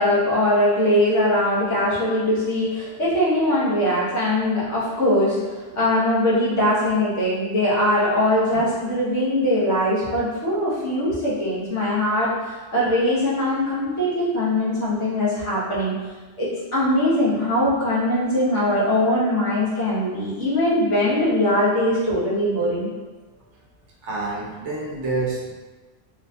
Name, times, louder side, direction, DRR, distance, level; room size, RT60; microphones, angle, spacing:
voice 1, 0.0-16.0 16.4-22.9, left 1 dB, 85° left, -8 dB, 1.5 m, -21 dB
voice 2, 24.0-25.5, right 3 dB, 75° right, -3 dB, 1.1 m, -28 dB
4.6 x 2.8 x 2.3 m, 1.3 s
omnidirectional pair, 1.2 m